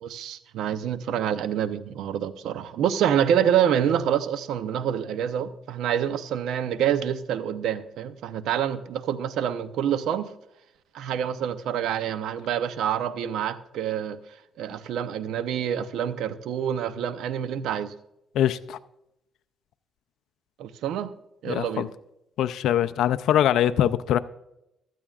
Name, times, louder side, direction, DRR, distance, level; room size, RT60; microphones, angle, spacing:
voice 1, 0.0-10.3 10.9-14.2 14.6-17.9 20.6-21.1 21.4-21.9, right 9 dB, 85° right, 0.7 m, -27 dB
voice 2, 18.3-18.8 21.4-21.9 22.4-24.2, left 11 dB, 80° left, 0.4 m, -23 dB
15.5 x 12.5 x 2.4 m
cardioid pair, 90°, 0 cm